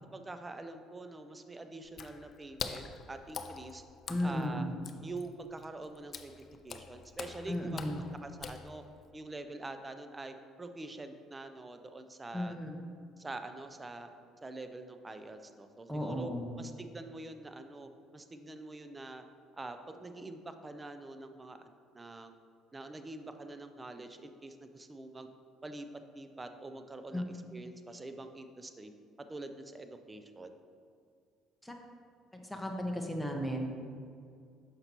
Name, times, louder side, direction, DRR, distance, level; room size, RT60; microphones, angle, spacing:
voice 1, 0.1-3.8 4.2-4.7 5.0-8.8 9.1-12.6 13.2-14.1 14.4-16.3 16.6-19.2 19.6-22.3 22.7-25.3 25.6-25.9 26.1-28.9 29.3-30.5, right 2 dB, 20° right, 8 dB, 0.5 m, -45 dB
Water / Splash splatter, 1.9-9.1, left 5 dB, 45° left, 0.4 m, -45 dB
voice 2, 4.1-4.7 7.5-8.0 12.3-12.8 15.9-16.5 27.1-27.2 31.6-31.7 32.4-33.7, equal, ahead, 1 dB, 0.9 m, -35 dB
6.7 x 5.6 x 3.0 m, 2.3 s
supercardioid pair, 75°, 0 cm